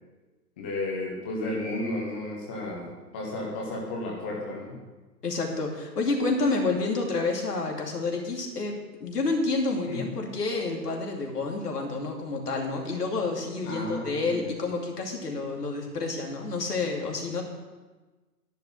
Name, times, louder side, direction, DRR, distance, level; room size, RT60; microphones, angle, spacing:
voice 1, 0.6-4.8 9.9-10.1 13.6-14.5, left 1 dB, 10° left, -2 dB, 0.5 m, -33 dB
voice 2, 5.2-17.4, left 3 dB, 70° left, 1 dB, 2.8 m, -29 dB
11.0 x 5.7 x 8.6 m, 1.2 s
figure-of-eight pair, 125°, 49 cm